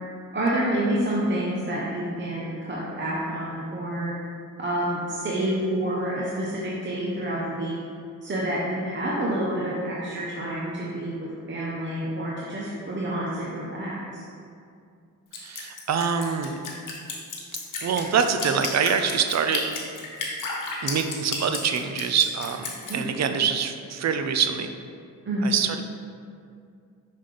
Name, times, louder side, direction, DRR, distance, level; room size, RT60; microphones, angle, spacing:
voice 1, 0.3-4.1 4.6-7.8 8.2-14.2 22.8-23.0 25.3-25.5, right 1 dB, 35° right, -6 dB, 0.9 m, -28 dB
Drip, 15.3-22.9, left 4 dB, 65° left, 1.2 m, -32 dB
voice 2, 15.4-16.6 17.8-19.6 20.8-24.7 25.4-25.8, right 6 dB, 50° right, 7 dB, 0.5 m, -25 dB
5.6 x 5.6 x 3.3 m, 2.4 s
cardioid pair, 90°, 34 cm